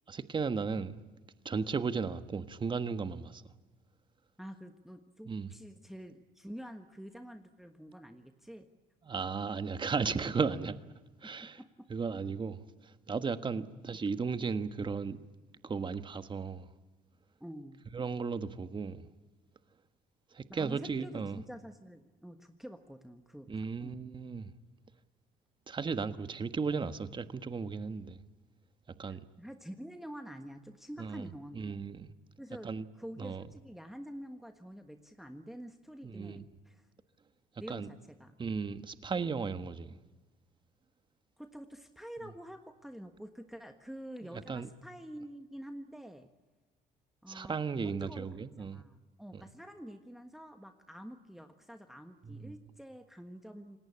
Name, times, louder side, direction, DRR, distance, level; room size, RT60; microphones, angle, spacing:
voice 1, 0.1-0.9 1.4-3.4 5.3-5.5 9.1-10.8 11.2-11.6 11.9-15.2 15.6-16.7 17.9-19.1 20.3-21.4 23.5-24.5 25.7-28.2 29.0-29.2 31.0-31.3 31.5-32.1 32.6-32.9 33.2-33.4 36.0-36.4 37.7-37.9 38.4-40.0 44.5-44.7 47.3-48.8 49.3-49.4 52.3-52.5, right 5 dB, 30° right, 1.4 m, -35 dB
voice 2, 4.4-8.7 11.2-11.9 13.9-14.0 17.4-17.9 20.5-24.1 29.1-31.8 32.4-36.9 37.6-38.4 41.4-46.3 47.2-47.5 47.8-53.8, equal, ahead, 1.4 m, -47 dB
28.0 x 18.5 x 8.7 m
cardioid pair, 110°, 17 cm